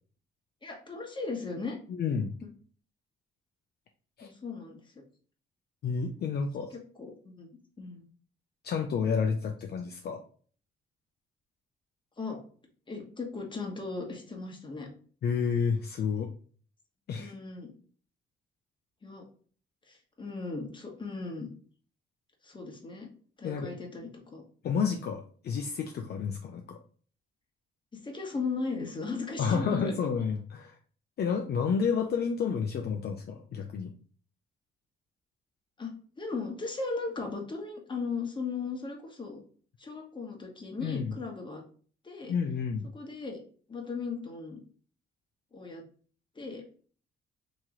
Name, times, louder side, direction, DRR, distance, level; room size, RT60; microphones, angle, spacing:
voice 1, 0.6-1.8 4.2-4.8 6.7-7.5 7.8-8.0 12.2-12.4 12.9-14.9 17.2-17.7 19.0-19.2 19.9-21.5 22.4-23.1 23.4-24.4 27.9-29.9 35.8-35.9 36.2-39.4 39.8-41.6 42.0-42.4 42.9-43.4 43.7-44.6 45.5-45.8 46.3-46.6, left 4 dB, 25° left, 2 dB, 1.2 m, -37 dB
voice 2, 1.9-2.4 4.2-4.3 5.8-6.7 8.6-10.2 15.2-16.3 17.1-17.4 23.4-23.7 24.6-26.8 29.4-30.7 31.2-33.9 40.8-41.1 42.3-42.9, left 6 dB, 55° left, 3 dB, 0.5 m, -30 dB
3.0 x 2.9 x 3.7 m, 0.43 s
cardioid pair, 90°, 20 cm